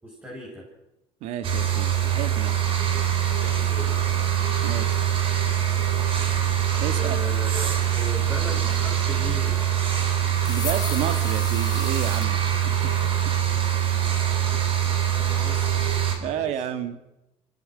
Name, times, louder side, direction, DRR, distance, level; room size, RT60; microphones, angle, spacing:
voice 1, 0.0-0.6 3.4-4.0 6.9-7.5 7.9-9.6 15.3-16.7, left 1 dB, 15° right, -4 dB, 7.5 m, -38 dB
voice 2, 1.2-2.6 4.6-5.0 6.8-7.2 10.5-12.4 12.6-12.9 16.2-17.0, right 10 dB, 80° right, 11 dB, 1.5 m, -31 dB
sound 1, 1.4-16.2, right 10 dB, 50° right, 4.5 m, -23 dB
sound 2, 10.4-12.3, left 7 dB, 35° left, 2.3 m, -35 dB
25.5 x 17.5 x 6.4 m, 0.95 s
cardioid pair, 120°, 11 cm